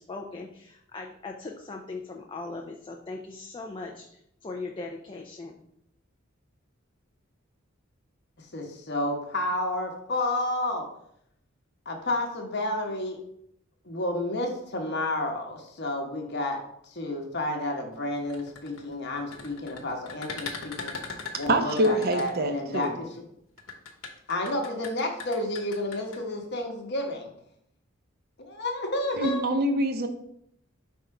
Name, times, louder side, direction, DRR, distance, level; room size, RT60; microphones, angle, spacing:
voice 1, 0.0-5.6, left 3 dB, 25° left, 1 dB, 0.5 m, -39 dB
voice 2, 8.4-10.8 11.8-13.2 13.9-20.9 21.4-23.1 24.3-27.3 28.5-29.4, left 1 dB, 55° left, 2 dB, 1.1 m, -30 dB
sound 1, 18.2-22.9 23.6-26.2, left 4 dB, 75° left, 1.1 m, -39 dB
voice 3, 21.5-23.0 29.1-30.1, right 1 dB, 50° right, 7 dB, 0.7 m, -25 dB
5.5 x 3.6 x 4.7 m, 0.73 s
head